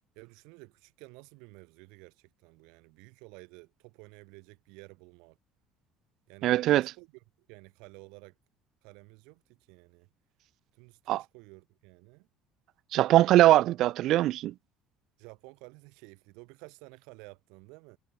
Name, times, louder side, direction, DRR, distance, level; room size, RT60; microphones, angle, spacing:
voice 1, 0.1-5.4 6.3-7.1 7.5-8.3 8.8-9.4 9.7-10.1 10.8-12.3 13.3-13.5 15.2-18.0, right 30 dB, 85° right, 6.5 m, -52 dB
voice 2, 6.4-6.9 11.1-11.2 12.9-14.5, right 14 dB, 50° right, 0.8 m, -21 dB
cardioid pair, 165°, 0 cm